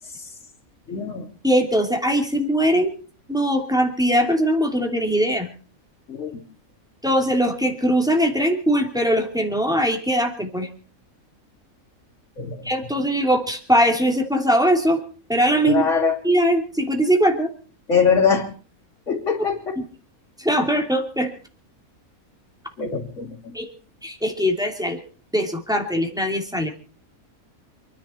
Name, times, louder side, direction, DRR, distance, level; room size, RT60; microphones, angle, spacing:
voice 1, 0.9-1.3 6.1-6.4 12.4-12.6 15.6-16.2 17.9-18.5 19.1-19.8 22.8-23.6, left 6 dB, 60° left, -2 dB, 3.6 m, -22 dB
voice 2, 1.4-2.9 3.3-5.5 7.0-10.7 12.6-15.0 15.3-15.8 16.2-17.5 19.8-19.9 20.4-21.3 23.5-23.7 24.0-25.0 25.3-26.7, equal, 5° right, 2 dB, 2.8 m, -21 dB
28.0 x 10.5 x 4.4 m, 0.40 s
omnidirectional pair, 1.5 m